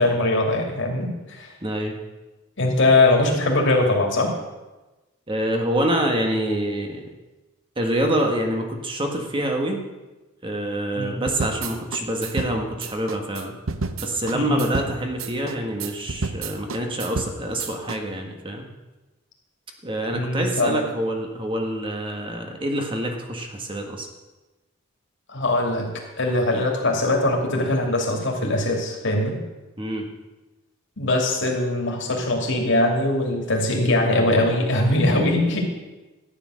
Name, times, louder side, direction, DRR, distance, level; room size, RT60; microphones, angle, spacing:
voice 1, 0.0-1.5 2.6-4.3 10.9-11.2 14.3-14.6 20.1-20.9 25.3-25.9 26.2-29.4 31.0-35.6, left 2 dB, 60° left, 0 dB, 2.8 m, -21 dB
voice 2, 1.6-2.0 5.3-7.0 7.8-9.8 10.4-13.5 14.0-18.7 19.8-24.1 29.8-30.1, right 1 dB, 25° right, 2 dB, 1.6 m, -26 dB
sound 1, 11.3-18.0, right 4 dB, 80° right, 0.8 m, -31 dB
13.5 x 9.8 x 6.5 m, 1.1 s
head